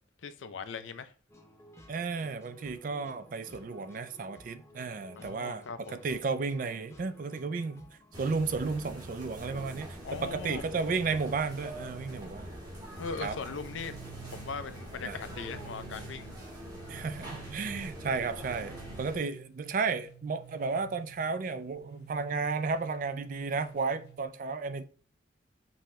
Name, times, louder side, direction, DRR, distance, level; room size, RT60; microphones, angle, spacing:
voice 1, 0.2-1.1 5.1-6.0 10.0-10.8 13.0-13.9 14.3-16.3, left 5 dB, 90° left, 0.5 m, -39 dB
sound 1, 1.3-8.2, equal, 15° left, 0.6 m, -55 dB
voice 2, 1.9-5.6 5.9-7.9 8.2-12.5 13.2-13.4 15.0-15.2 16.9-24.8, right 4 dB, 45° right, 0.4 m, -33 dB
sound 2, 8.1-19.2, equal, 20° right, 1.3 m, -44 dB
sound 3, 13.3-24.3, right 12 dB, 60° left, 0.7 m, -52 dB
5.4 x 2.8 x 3.1 m
head